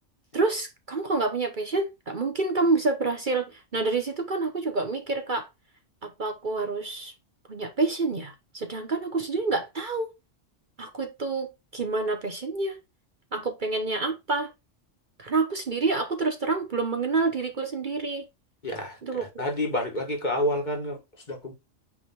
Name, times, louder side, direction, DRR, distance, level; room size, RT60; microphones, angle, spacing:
voice 1, 0.3-5.5 6.0-7.1 7.5-10.1 10.8-12.8 13.3-14.5 15.2-18.3 19.0-19.4, right 3 dB, 40° right, 1.1 m, -28 dB
voice 2, 18.6-19.0 19.4-21.0 21.3-21.5, left 1 dB, 40° left, 1.8 m, -28 dB
8.6 x 3.6 x 4.3 m
omnidirectional pair, 1.3 m